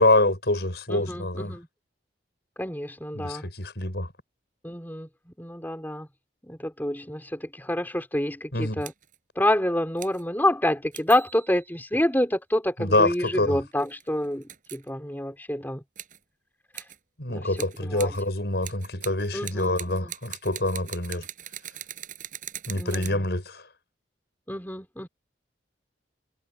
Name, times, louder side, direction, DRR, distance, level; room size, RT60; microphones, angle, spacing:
voice 1, 0.0-1.5 3.2-4.1 8.5-8.8 12.8-13.6 17.2-21.3 22.7-23.7, left 2 dB, 60° left, 6.9 m, -25 dB
voice 2, 0.9-1.7 2.6-3.4 4.6-6.1 6.5-8.9 9.4-15.8 16.7-16.9 17.3-18.1 19.3-20.1 22.7-23.2 24.5-25.1, left 1 dB, 10° left, 5.2 m, -28 dB
sound 1, 8.8-9.2 10.0-10.2 10.9-11.8 13.7-14.9 16.0-16.2 16.7-17.0 17.6-18.3 18.6-23.1, right 11 dB, 45° right, 7.2 m, -41 dB
head